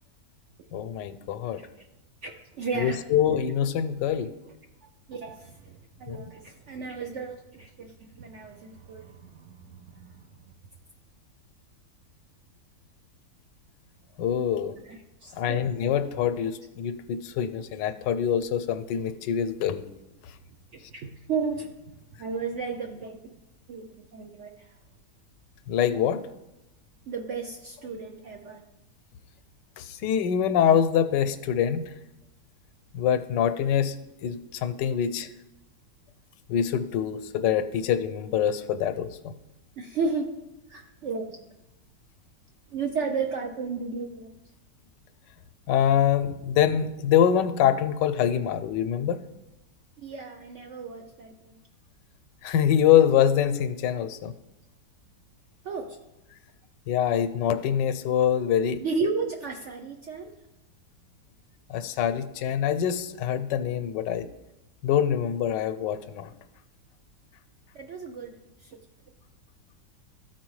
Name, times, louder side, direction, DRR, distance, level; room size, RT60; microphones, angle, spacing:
voice 1, 0.7-1.6 2.8-4.3 6.1-6.2 14.2-14.7 15.3-19.8 25.7-26.2 29.8-31.9 32.9-34.0 34.2-35.3 36.5-39.3 45.7-49.2 52.4-54.3 56.9-58.8 61.7-64.3 64.8-66.3, left 9 dB, 90° left, 11 dB, 1.2 m, -24 dB
voice 2, 2.2-3.0 4.1-4.2 5.1-10.3 14.8-15.6 20.7-21.7 22.2-23.2 23.7-24.7 27.1-28.6 39.8-40.4 40.7-41.4 42.7-44.4 50.0-51.5 55.6-56.0 58.8-60.4 67.7-68.4 68.6-68.7, right 4 dB, 70° right, 3 dB, 0.7 m, -34 dB
13.5 x 4.5 x 3.1 m, 0.95 s
omnidirectional pair, 1.8 m